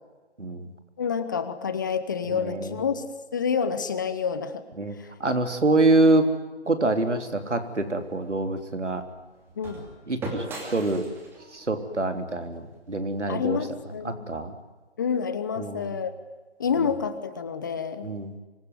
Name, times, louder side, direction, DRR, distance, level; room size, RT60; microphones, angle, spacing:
voice 1, 0.4-0.7 2.3-2.7 4.8-4.9 5.2-6.3 6.7-9.0 10.1-10.5 10.7-11.1 11.5-13.6 14.0-14.6 15.6-16.0 16.8-16.9 18.0-18.3, right 2 dB, 85° right, 7 dB, 3.5 m, -25 dB
voice 2, 1.0-3.0 3.3-4.6 5.0-5.1 9.6-9.9 13.3-14.3 15.0-16.1 16.6-18.1, left 6 dB, 15° left, 12 dB, 0.9 m, -28 dB
sound 1, 7.4-13.6, right 2 dB, 5° right, 2.8 m, -41 dB
25.0 x 21.0 x 9.4 m, 1.2 s
figure-of-eight pair, 155°, 34 cm